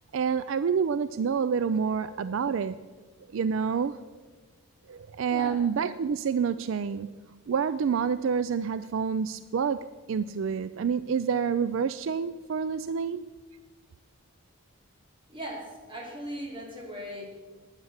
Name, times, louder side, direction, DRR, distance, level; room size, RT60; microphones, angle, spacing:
voice 1, 0.1-2.8 3.3-4.0 4.9-7.1 7.5-13.2, right 6 dB, 60° right, 0.4 m, -28 dB
voice 2, 5.3-5.6 15.3-17.2, equal, 25° right, 3.2 m, -38 dB
13.0 x 9.5 x 6.4 m
head